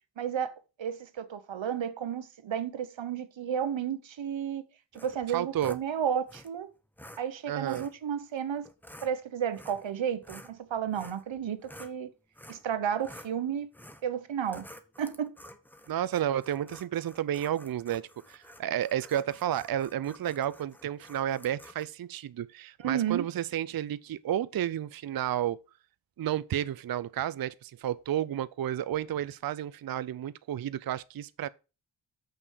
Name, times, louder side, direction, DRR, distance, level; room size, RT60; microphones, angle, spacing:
voice 1, 0.2-4.6 4.9-6.7 7.2-8.7 9.0-12.1 12.5-13.7 14.0-14.7 15.0-15.4 22.8-23.3, right 8 dB, 85° right, 0.9 m, -32 dB
sound 1, 4.9-5.8 6.3-6.5 7.0-7.2 7.7-8.0 8.6-9.1 9.5-9.9 10.2-12.0 12.4-12.7 13.0-13.3 13.7-14.1 14.5-21.9, equal, 5° left, 1.1 m, -50 dB
voice 2, 5.3-5.8 7.5-7.9 15.9-25.6 26.2-31.5, right 11 dB, 55° right, 0.5 m, -31 dB
7.0 x 5.5 x 6.2 m
cardioid pair, 55°, 44 cm